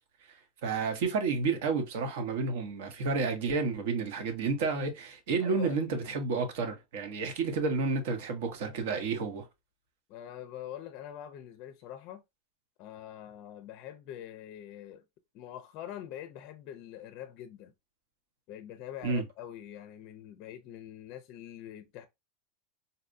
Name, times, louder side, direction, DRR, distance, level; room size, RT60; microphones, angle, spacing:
voice 1, 0.6-9.5 19.0-19.2, right 4 dB, 65° right, 1.0 m, -30 dB
voice 2, 5.4-6.1 10.1-12.2 12.8-15.0 15.3-17.7 18.5-22.1, left 11 dB, 40° left, 0.4 m, -44 dB
4.1 x 2.2 x 2.5 m
supercardioid pair, 165°, 0 cm